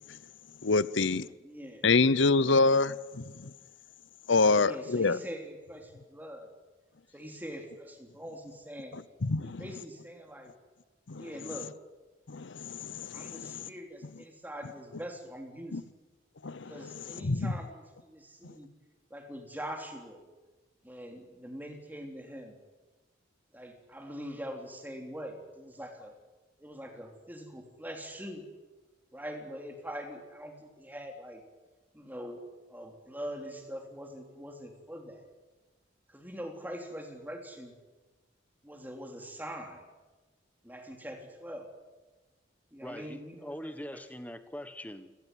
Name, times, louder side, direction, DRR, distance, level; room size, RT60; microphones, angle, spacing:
voice 1, 0.6-1.3 1.8-3.5 4.3-5.2 8.9-9.6 11.1-11.3 12.3-13.7 15.7-15.8 16.4-17.5, left 3 dB, 75° left, 18 dB, 0.8 m, -27 dB
voice 2, 1.4-1.9 4.5-6.5 7.1-9.0 9.4-10.5 11.2-11.7 13.1-15.9 16.7-18.7 19.1-20.2 20.8-22.5 23.5-26.1 26.6-28.4 29.1-31.4 31.9-32.4 32.7-35.3 36.1-37.7 38.6-39.8 40.6-41.7 42.7-44.0, equal, 10° right, 3 dB, 3.5 m, -43 dB
voice 3, 42.8-45.2, equal, 10° left, 11 dB, 1.2 m, -42 dB
28.5 x 18.5 x 9.3 m, 1.2 s
head